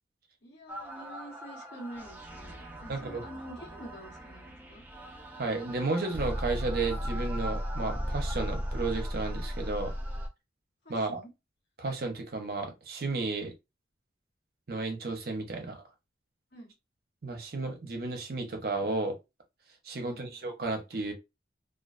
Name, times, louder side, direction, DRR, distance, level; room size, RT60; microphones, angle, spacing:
voice 1, 0.4-4.8 10.8-11.3 16.5-16.7 20.0-20.2, right 1 dB, 65° left, 1.1 m, -47 dB
sound 1, 0.7-10.3, equal, 10° right, 0.4 m, -36 dB
voice 2, 2.9-3.2 5.4-9.9 10.9-11.2 11.8-13.5 14.7-15.8 17.2-19.2 19.8-21.1, right 3 dB, 55° right, 0.6 m, -33 dB
2.3 x 2.2 x 2.4 m
head